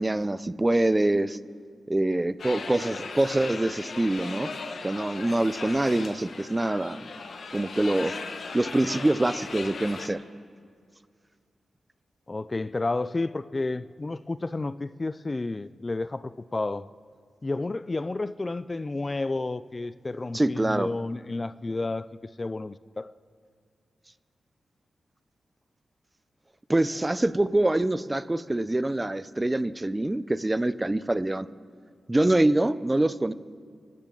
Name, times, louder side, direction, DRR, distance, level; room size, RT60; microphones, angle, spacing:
voice 1, 0.0-1.4 1.9-4.5 4.8-7.1 7.5-8.2 8.5-10.2 20.3-20.9 26.7-31.5 32.1-33.3, right 1 dB, 20° right, 15 dB, 0.5 m, -25 dB
sound 1, 2.4-10.1, left 4 dB, 70° left, 1.2 m, -38 dB
voice 2, 12.3-16.9 17.4-22.1 22.4-23.1, left 2 dB, 30° left, 15 dB, 0.4 m, -31 dB
24.5 x 14.0 x 3.9 m, 2.2 s
cardioid pair, 65°, 0 cm